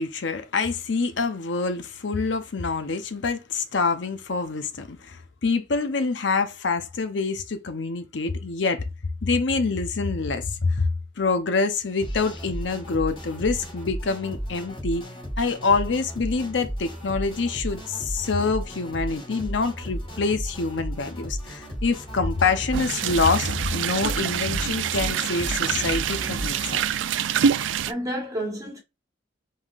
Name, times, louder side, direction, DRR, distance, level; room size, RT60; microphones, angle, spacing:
voice 1, 0.0-8.8 9.2-10.9 11.2-15.0 15.4-26.8, left 4 dB, 80° left, 0.7 m, -26 dB
sound 1, 12.0-26.8, equal, 30° left, 3.0 m, -34 dB
sound 2, 22.7-27.9, right 8 dB, 90° right, 0.3 m, -26 dB
voice 2, 27.5-28.8, equal, 20° right, 1.2 m, -31 dB
5.4 x 3.5 x 2.4 m
head